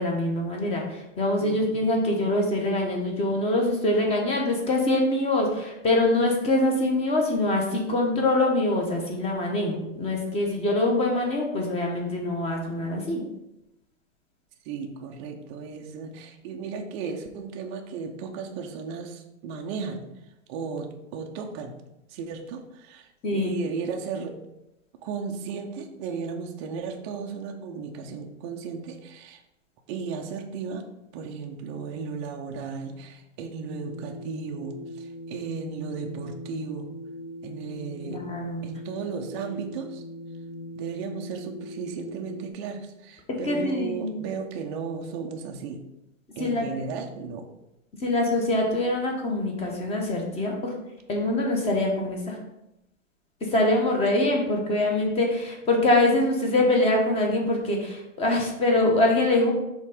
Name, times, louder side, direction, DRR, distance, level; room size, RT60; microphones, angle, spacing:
voice 1, 0.0-13.2 23.2-23.6 38.0-38.6 43.3-44.2 46.4-46.6 48.0-50.7 51.1-52.4 53.4-59.5, left 2 dB, 15° left, 0 dB, 0.9 m, -24 dB
voice 2, 1.4-2.0 14.7-20.0 20.5-21.7 22.1-24.3 25.0-29.4 29.9-30.8 31.1-36.9 37.4-38.2 38.6-40.0 40.8-45.8 46.4-47.5, right 5 dB, 25° right, 2 dB, 0.5 m, -35 dB
sound 1, 33.6-42.5, left 1 dB, 45° left, 1.3 m, -40 dB
5.5 x 3.7 x 4.9 m, 0.90 s
hypercardioid pair, 145°, 39 cm